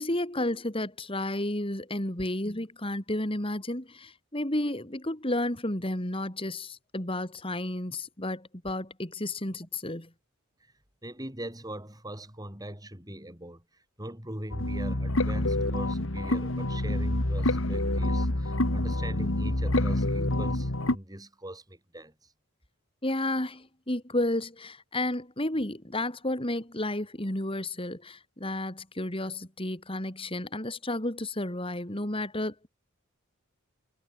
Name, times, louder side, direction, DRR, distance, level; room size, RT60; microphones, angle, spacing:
voice 1, 0.0-10.1 23.0-32.7, left 1 dB, 25° left, 3.2 m, -32 dB
voice 2, 11.0-22.3, right 1 dB, 15° right, 6.8 m, -41 dB
sound 1, 14.5-20.9, left 1 dB, 60° left, 2.2 m, -27 dB
head